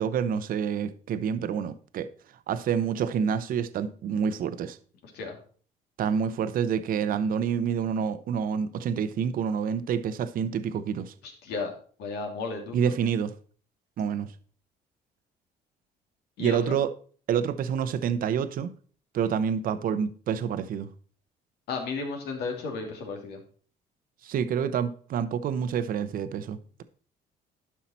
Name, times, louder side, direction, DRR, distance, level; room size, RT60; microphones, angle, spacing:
voice 1, 0.0-2.1 2.5-4.8 6.0-11.1 12.7-13.3 14.0-14.3 16.4-16.9 17.3-18.7 19.1-20.9 24.2-26.8, right 7 dB, 55° right, 0.8 m, -28 dB
voice 2, 5.0-5.4 11.2-11.7 12.0-13.0 16.4-16.8 21.7-23.4, left 4 dB, 75° left, 2.7 m, -34 dB
11.5 x 5.7 x 4.3 m
cardioid pair, 110°, 17 cm